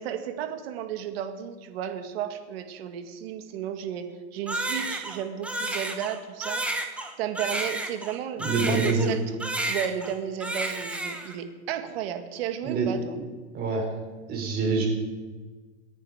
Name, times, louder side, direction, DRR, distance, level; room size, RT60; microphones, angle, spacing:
voice 1, 0.0-6.9 7.2-13.2, right 9 dB, 60° right, 7 dB, 2.1 m, -33 dB
Crying sobbing, 4.5-9.2 9.4-10.1 10.4-11.4, right 2 dB, 5° right, 1.3 m, -31 dB
voice 2, 8.4-9.1 12.6-12.9 13.5-13.8 14.3-14.9, right 4 dB, 25° right, 1 dB, 4.5 m, -25 dB
28.0 x 10.0 x 5.0 m, 1.4 s
supercardioid pair, 165°, 34 cm